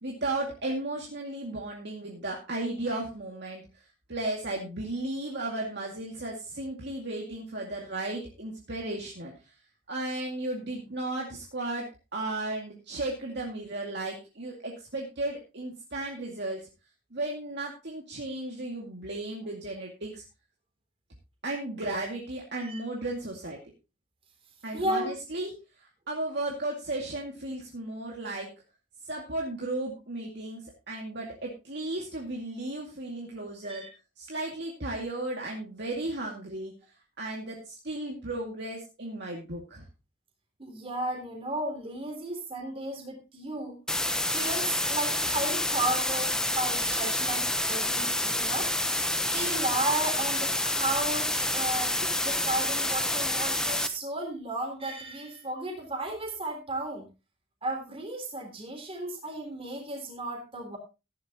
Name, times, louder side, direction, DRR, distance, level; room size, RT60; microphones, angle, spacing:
voice 1, 0.0-3.6 4.1-9.3 9.9-16.7 17.1-20.2 21.4-23.6 24.6-25.5 25.8-28.5 29.1-33.8 34.2-36.7 37.2-39.8 52.0-52.2 52.5-52.6, right 2 dB, 55° right, -1 dB, 2.2 m, -35 dB
voice 2, 24.7-25.1 33.6-33.9 40.6-43.8 44.3-48.7 49.2-52.0 52.2-57.1 57.6-60.8, right 2 dB, 30° right, 1 dB, 3.5 m, -34 dB
sound 1, 43.9-53.9, left 1 dB, 5° left, 0.8 m, -28 dB
15.0 x 11.0 x 2.9 m, 0.28 s
head